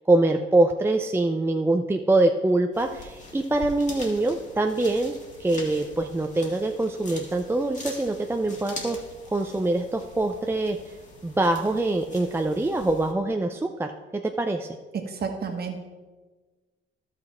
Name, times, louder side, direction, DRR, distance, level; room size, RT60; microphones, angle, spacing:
voice 1, 0.1-9.0 9.3-10.8 11.2-14.7, right 2 dB, 10° right, 4 dB, 0.5 m, -24 dB
sound 1, 2.7-13.1, left 2 dB, 35° left, 2.0 m, -43 dB
voice 2, 14.9-15.8, right 5 dB, 50° right, 4 dB, 1.4 m, -31 dB
12.0 x 6.0 x 4.4 m, 1.3 s
cardioid pair, 90°, 20 cm